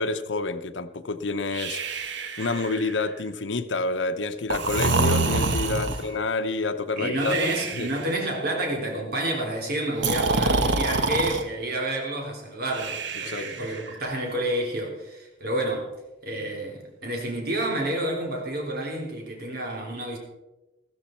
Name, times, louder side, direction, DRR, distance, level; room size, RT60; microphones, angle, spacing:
voice 1, 0.0-1.8 2.4-7.3 7.7-7.9 13.2-13.5, left 3 dB, 90° left, 7 dB, 0.8 m, -28 dB
Breathing, 1.5-3.1 4.5-6.1 7.2-8.2 9.9-11.4 12.7-13.9, right 3 dB, 75° right, 1.1 m, -26 dB
voice 2, 5.7-6.0 7.0-15.9 16.2-20.2, right 1 dB, 60° right, 0 dB, 3.4 m, -29 dB
14.0 x 14.0 x 4.4 m, 1.0 s
head